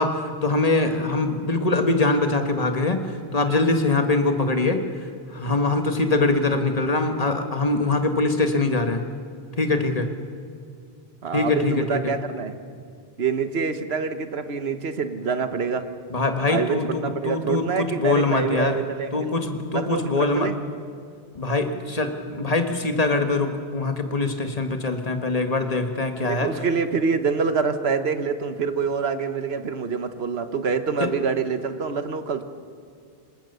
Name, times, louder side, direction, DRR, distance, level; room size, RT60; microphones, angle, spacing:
voice 1, 0.0-3.0 3.3-4.8 5.3-9.0 9.6-10.1 11.3-12.1 16.1-18.8 19.1-20.5 21.4-26.5 31.0-31.1, left 3 dB, 35° left, 6 dB, 1.7 m, -23 dB
voice 2, 11.2-12.5 13.2-15.9 16.5-19.3 19.7-20.6 26.3-32.4, right 5 dB, 75° right, 9 dB, 1.5 m, -26 dB
27.0 x 19.5 x 6.8 m, 2.3 s
omnidirectional pair, 1.1 m